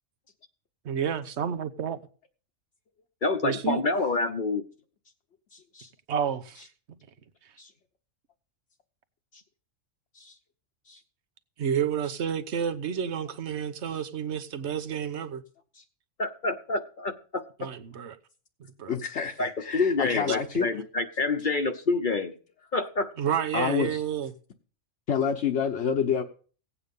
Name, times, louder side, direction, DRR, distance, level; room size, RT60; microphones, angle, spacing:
voice 1, 0.8-2.0 3.4-3.8 6.1-6.7 11.6-15.4 17.6-18.2 18.8-18.9 20.3-20.4 23.2-24.3, right 8 dB, 60° right, 1.2 m, -30 dB
voice 2, 3.2-4.6 16.2-17.7 19.4-22.3 22.7-23.1, left 3 dB, 45° left, 0.9 m, -27 dB
voice 3, 5.5-5.9 7.6-7.7 9.3-9.4 10.1-10.4 10.9-11.0 15.7-15.8 18.9-20.7 23.5-24.0 25.1-26.2, left 7 dB, 60° left, 1.2 m, -29 dB
16.5 x 8.6 x 5.4 m
omnidirectional pair, 1.3 m